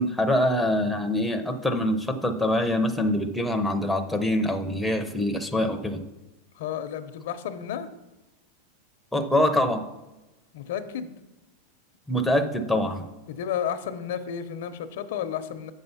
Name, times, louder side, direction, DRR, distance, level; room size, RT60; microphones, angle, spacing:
voice 1, 0.0-6.0 9.1-9.9 12.1-13.0, left 1 dB, ahead, 5 dB, 0.6 m, -24 dB
voice 2, 6.5-7.9 10.5-11.1 13.3-15.7, left 9 dB, 70° left, 10 dB, 0.7 m, -32 dB
7.4 x 5.5 x 5.6 m, 1.0 s
supercardioid pair, 145°, 0 cm